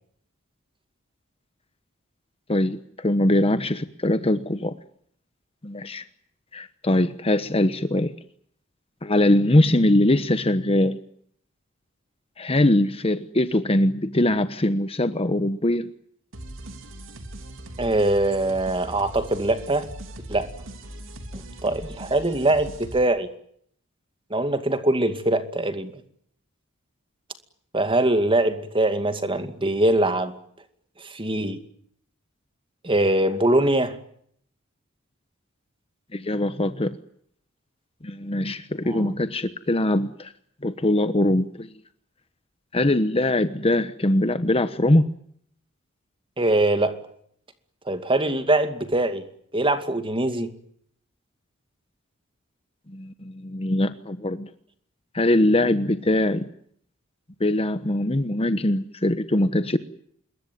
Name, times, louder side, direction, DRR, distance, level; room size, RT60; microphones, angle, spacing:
voice 1, 2.5-4.8 5.6-6.0 6.5-8.1 9.0-11.0 12.4-15.9 36.1-37.0 38.0-40.3 40.6-41.7 42.7-45.1 52.9-54.5 55.1-56.5 57.4-59.8, left 1 dB, 30° left, 10 dB, 1.1 m, -22 dB
sound 1, 16.3-23.0, right 1 dB, 70° right, 3.3 m, -40 dB
voice 2, 17.8-19.9 20.3-20.5 21.3-23.3 24.3-25.9 27.7-30.3 31.0-31.6 32.8-34.0 38.9-39.1 46.4-47.0 47.9-49.2 49.5-50.5, right 1 dB, 25° right, 9 dB, 2.4 m, -22 dB
26.5 x 22.0 x 9.3 m, 0.67 s
head